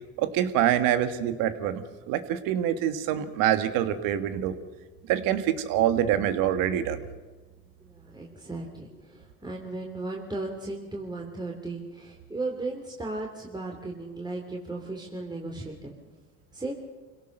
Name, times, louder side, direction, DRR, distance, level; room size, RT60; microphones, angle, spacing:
voice 1, 0.2-4.5 5.1-7.0, right 10 dB, 75° right, 10 dB, 1.8 m, -25 dB
voice 2, 7.9-15.9 16.5-16.7, right 2 dB, 10° right, -1 dB, 3.3 m, -36 dB
26.0 x 17.5 x 6.7 m, 1.3 s
supercardioid pair, 85°, 33 cm